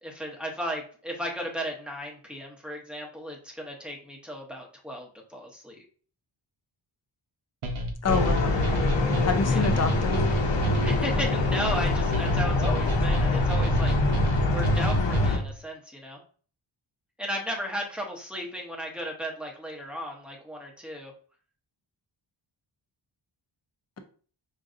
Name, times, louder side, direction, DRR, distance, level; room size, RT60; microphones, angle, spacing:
voice 1, 0.0-5.8 9.5-9.7 10.8-13.9 14.5-16.2 17.2-21.1, equal, ahead, -1 dB, 0.7 m, -35 dB
sound 1, 7.6-15.5, right 2 dB, 80° right, 0.9 m, -30 dB
sound 2, 8.0-15.4, left 3 dB, 60° left, 0.8 m, -25 dB
voice 2, 8.0-8.6 9.2-10.2, left 4 dB, 35° left, 6 dB, 0.5 m, -27 dB
5.1 x 2.7 x 2.5 m, 0.42 s
wide cardioid pair, 165°, 49 cm